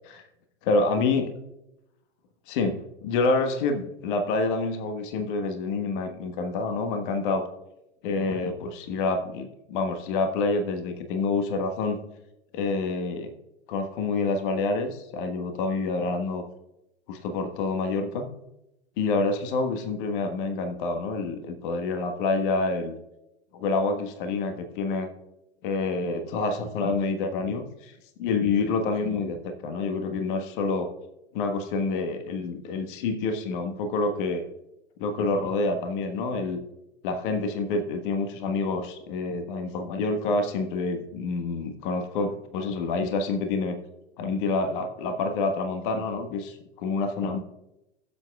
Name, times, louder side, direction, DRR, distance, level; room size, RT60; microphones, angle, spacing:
voice 1, 0.7-1.3 2.5-2.7 3.0-7.4 8.0-12.0 12.5-13.3 13.7-16.4 17.1-18.3 19.0-22.9 23.5-25.1 25.6-27.9 28.2-30.9 31.3-34.4 35.0-36.6 37.0-43.8 44.2-47.4, left 3 dB, 45° left, 6 dB, 1.5 m, -27 dB
17.0 x 7.9 x 2.4 m, 0.87 s
figure-of-eight pair, 95°, 35 cm